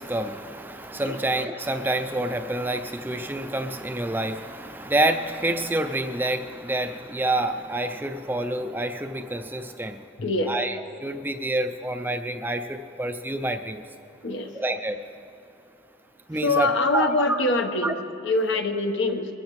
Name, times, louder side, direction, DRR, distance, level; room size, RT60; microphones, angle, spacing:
voice 1, 0.0-10.0 10.5-13.8 14.5-15.0 16.3-17.4 17.8-17.9, right 1 dB, 10° right, 7 dB, 0.4 m, -28 dB
voice 2, 10.2-10.5 14.2-14.5 16.4-18.0 18.2-19.3, left 2 dB, 75° left, 6 dB, 1.0 m, -24 dB
23.0 x 14.5 x 3.1 m, 2.8 s
head